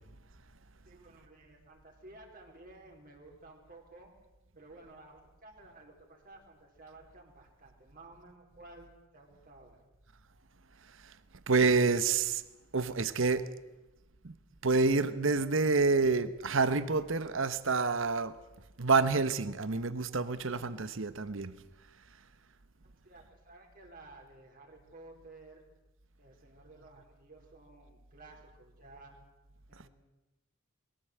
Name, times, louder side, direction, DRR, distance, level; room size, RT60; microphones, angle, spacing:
voice 1, 0.8-4.1 4.5-9.8 22.8-25.6 26.2-29.2 29.7-29.9, right 2 dB, 45° right, 4.1 m, -54 dB
voice 2, 11.5-12.4 12.7-13.4 14.2-14.3 14.6-18.4 18.8-21.5, right 4 dB, 65° right, 1.0 m, -28 dB
22.0 x 15.5 x 7.8 m
head